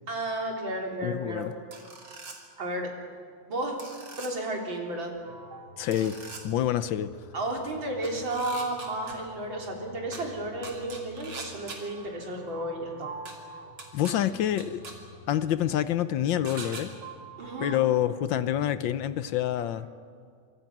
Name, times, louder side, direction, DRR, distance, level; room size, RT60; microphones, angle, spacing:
voice 1, 0.1-1.5 2.6-2.9 3.5-3.8 4.2-5.1 7.3-13.1 17.4-17.8, right 1 dB, 70° right, 0 dB, 4.2 m, -33 dB
voice 2, 1.0-1.5 5.8-7.1 13.9-14.8 15.3-16.9 17.6-19.9, left 11 dB, 75° left, 14 dB, 1.4 m, -27 dB
sound 1, 1.7-2.4 3.8-4.3 5.9-6.4 8.0-9.1 10.1-10.2 10.6-11.8 13.3-13.4 13.8-14.1 14.6-14.9 16.4-16.8, right 3 dB, 85° right, 3.6 m, -41 dB
sound 2, 5.2-19.9, right 2 dB, 55° right, 2.9 m, -47 dB
27.0 x 24.5 x 6.0 m, 2.2 s
omnidirectional pair, 2.2 m